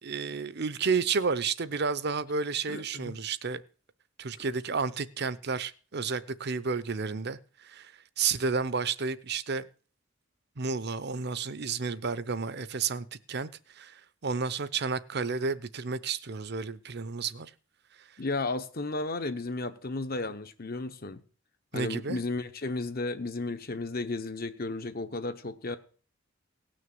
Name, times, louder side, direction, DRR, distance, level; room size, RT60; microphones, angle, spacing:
voice 1, 0.0-3.6 4.2-9.6 10.6-17.5 18.0-18.1 21.7-22.2, right 5 dB, 55° right, 0.8 m, -31 dB
voice 2, 2.7-3.1 18.2-21.2 21.7-25.8, left 3 dB, 50° left, 1.0 m, -34 dB
18.0 x 6.4 x 7.7 m
head